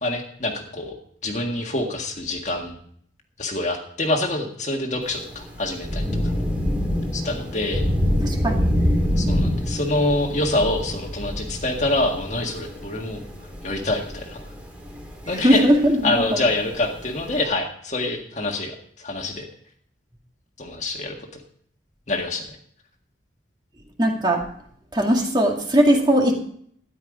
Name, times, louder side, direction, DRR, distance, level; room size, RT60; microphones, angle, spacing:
voice 1, 0.0-0.9 1.2-2.8 3.4-6.3 7.1-7.9 9.2-13.2 13.6-14.4 15.3-15.7 16.0-19.5 20.6-21.4 22.1-22.5, left 2 dB, 40° left, 2 dB, 1.8 m, -26 dB
Thunder / Rain, 5.0-17.4, equal, 10° right, 2.7 m, -26 dB
voice 2, 8.2-8.6 15.4-16.2 24.0-24.4 24.9-26.3, equal, 25° right, 1 dB, 2.1 m, -19 dB
13.5 x 10.5 x 5.1 m, 0.62 s
head